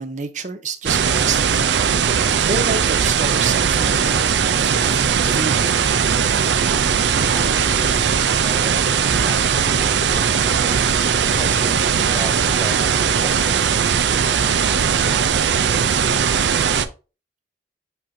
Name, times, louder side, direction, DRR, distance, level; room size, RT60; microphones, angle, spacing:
voice 1, 0.0-6.0, right 4 dB, 45° right, 0.8 m, -29 dB
sound 1, 0.9-16.9, right 7 dB, 75° right, 0.5 m, -19 dB
voice 2, 7.3-10.9 11.4-14.7, left 1 dB, 10° left, 0.5 m, -36 dB
8.2 x 5.0 x 2.7 m
head